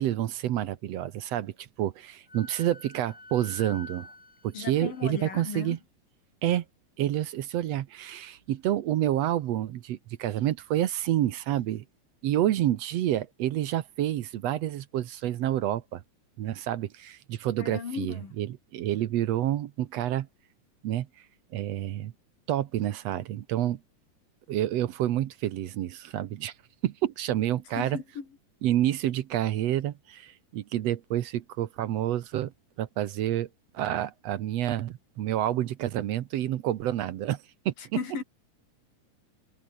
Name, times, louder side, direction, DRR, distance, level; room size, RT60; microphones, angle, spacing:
voice 1, 0.0-4.1 4.4-5.8 6.4-6.6 7.0-11.8 12.2-16.0 16.4-20.3 20.8-21.1 21.5-22.1 22.5-23.8 24.5-26.5 26.8-28.0 28.6-32.5 32.8-33.5 33.7-38.0, right 12 dB, 65° right, 1.7 m, -28 dB
Wind instrument woodwind instrument, 2.3-5.7, left 2 dB, 20° left, 4.0 m, -48 dB
voice 2, 4.5-5.8 17.6-18.3 27.8-28.3 37.9-38.2, left 6 dB, 85° left, 5.6 m, -35 dB
omnidirectional pair, 3.9 m